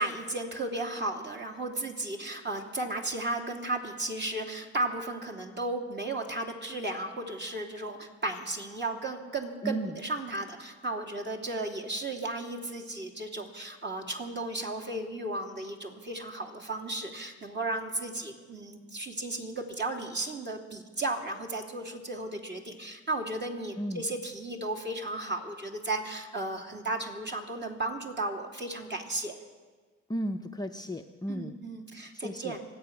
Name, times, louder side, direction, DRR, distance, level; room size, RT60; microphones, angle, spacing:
voice 1, 0.0-29.3 31.3-32.7, right 2 dB, 35° right, 1 dB, 2.8 m, -34 dB
voice 2, 9.6-10.0 23.8-24.1 30.1-31.6 32.1-32.6, equal, 15° left, 4 dB, 0.8 m, -34 dB
25.0 x 8.6 x 6.0 m, 1.4 s
supercardioid pair, 75°, 30 cm